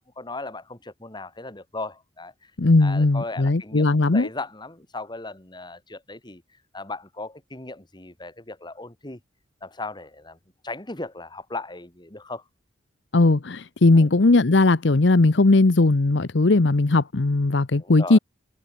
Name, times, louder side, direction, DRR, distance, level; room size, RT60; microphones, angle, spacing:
voice 1, 0.0-2.3 2.8-6.4 6.7-9.2 9.6-10.4 10.6-12.4 14.0-14.1 17.7-18.2, left 2 dB, 25° left, 2.4 m, -37 dB
voice 2, 2.6-4.3 13.1-18.2, left 2 dB, 65° left, 0.8 m, -18 dB
head